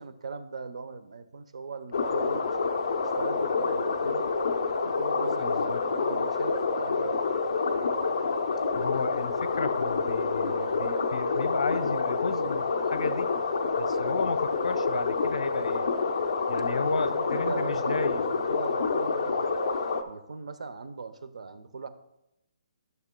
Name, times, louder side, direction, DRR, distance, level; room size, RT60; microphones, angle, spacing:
voice 1, 0.0-2.5 3.2-4.2 4.8-7.1 16.9-18.0 18.3-19.5 20.0-21.9, right 4 dB, 80° right, 11 dB, 0.8 m, -40 dB
sound 1, 1.9-20.0, left 4 dB, 50° left, 0.7 m, -28 dB
voice 2, 5.4-5.8 8.7-13.3 13.8-15.9 16.5-18.3, left 4 dB, 80° left, 11 dB, 0.8 m, -33 dB
13.0 x 6.7 x 2.2 m, 0.86 s
hypercardioid pair, 180°, 3 cm